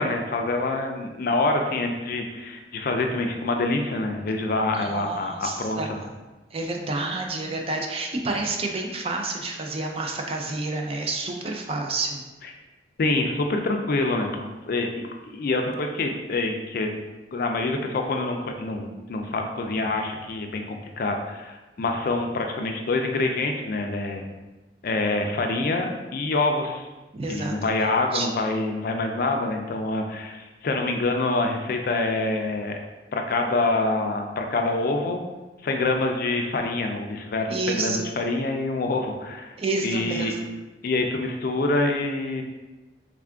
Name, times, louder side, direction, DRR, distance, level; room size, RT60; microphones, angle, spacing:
voice 1, 0.0-6.0 12.4-12.5 13.0-16.9 17.3-24.2 24.8-26.9 27.3-32.8 33.1-35.2 35.6-39.6 39.8-40.3 40.8-42.4, left 2 dB, 55° left, 3 dB, 0.4 m, -26 dB
voice 2, 4.7-5.9 6.5-12.2 27.1-27.5 28.1-28.3 37.4-38.0 39.6-40.4, right 3 dB, 35° right, 2 dB, 0.4 m, -29 dB
3.5 x 2.4 x 3.4 m, 1.2 s
head